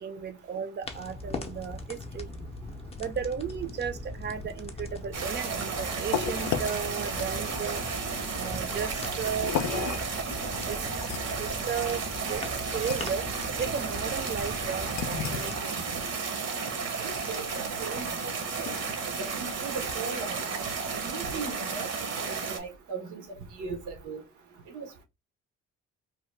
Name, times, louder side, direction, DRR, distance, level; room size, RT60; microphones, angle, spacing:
voice 1, 0.0-2.3 3.0-7.8 8.3-10.0 10.6-10.8 11.4-12.0 12.3-12.4 12.7-13.2 13.6-15.8, right 7 dB, 35° right, 0.5 m, -34 dB
sound 1, 0.8-15.6, left 2 dB, 20° left, 0.5 m, -40 dB
sound 2, 5.1-22.6, right 5 dB, 60° right, 0.9 m, -33 dB
sound 3, 5.4-20.3, left 8 dB, 70° left, 0.5 m, -38 dB
voice 2, 17.0-18.1 18.6-18.7 19.2-20.4 20.9-21.9 22.3-23.2 23.6-24.2 24.7-25.0, right 4 dB, 80° right, 1.0 m, -38 dB
2.8 x 2.1 x 3.1 m
cardioid pair, 90°, 30 cm